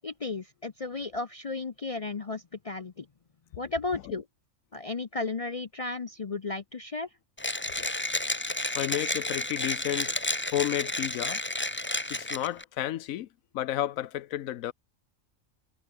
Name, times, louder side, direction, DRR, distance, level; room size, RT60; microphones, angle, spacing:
voice 1, 0.0-3.1 3.6-4.2 4.7-7.1, left 3 dB, 40° left, 0.5 m, -34 dB
Mechanisms, 7.4-12.6, left 1 dB, 10° left, 1.0 m, -31 dB
voice 2, 8.7-10.2 10.5-11.4 12.1-13.3 13.5-14.7, left 13 dB, 80° left, 1.1 m, -32 dB
omnidirectional pair, 1.4 m